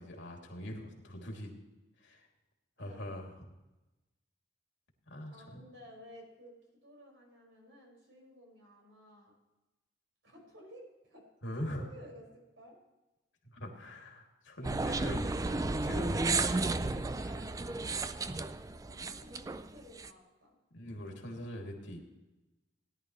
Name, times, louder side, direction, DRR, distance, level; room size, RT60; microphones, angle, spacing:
voice 1, 0.0-1.5 2.0-2.3 2.8-3.3 5.1-5.6 11.4-11.9 13.4-16.5 16.8-17.4 20.7-22.0, equal, 75° left, 1 dB, 2.6 m, -42 dB
voice 2, 2.8-3.1 5.3-9.3 10.2-11.2 11.6-12.8 17.1-20.6, equal, 90° right, -1 dB, 5.4 m, -55 dB
sound 1, 14.6-20.1, right 3 dB, 20° right, 0.4 m, -33 dB
18.0 x 11.0 x 3.1 m, 1.1 s
head